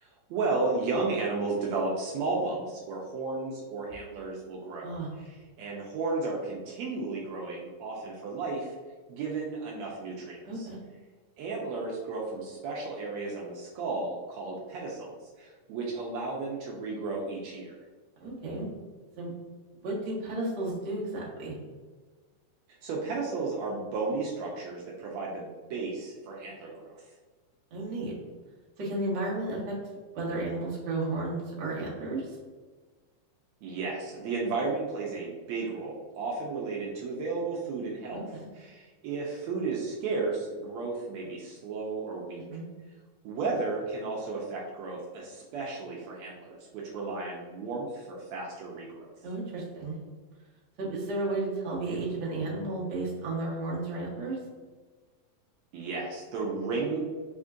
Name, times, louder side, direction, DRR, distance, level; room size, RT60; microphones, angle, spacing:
voice 1, 0.0-4.9 5.2-8.7 9.1-10.7 11.4-17.7 22.8-27.0 33.6-38.2 38.5-42.4 43.2-49.1 55.7-57.0, right 3 dB, 80° right, -3 dB, 1.8 m, -33 dB
voice 2, 10.4-10.8 18.2-18.7 19.2-19.3 19.8-21.5 27.7-28.1 28.8-29.8 30.1-32.4 38.1-38.5 42.5-42.6 49.2-50.0 50.8-54.4, right 2 dB, 55° right, -5 dB, 1.4 m, -33 dB
4.3 x 3.8 x 2.4 m, 1.4 s
omnidirectional pair, 3.3 m